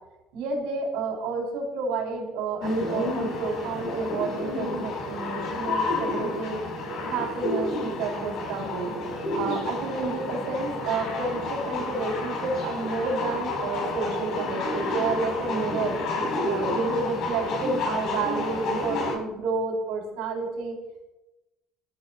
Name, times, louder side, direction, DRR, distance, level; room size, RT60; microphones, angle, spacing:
voice 1, 0.3-6.6 7.0-8.9 9.3-16.0 16.5-20.8, right 3 dB, 80° right, 0 dB, 3.8 m, -30 dB
sound 1, 2.6-19.2, left 2 dB, 65° left, 5.0 m, -30 dB
21.0 x 12.5 x 2.4 m, 0.98 s
supercardioid pair, 90°, 0 cm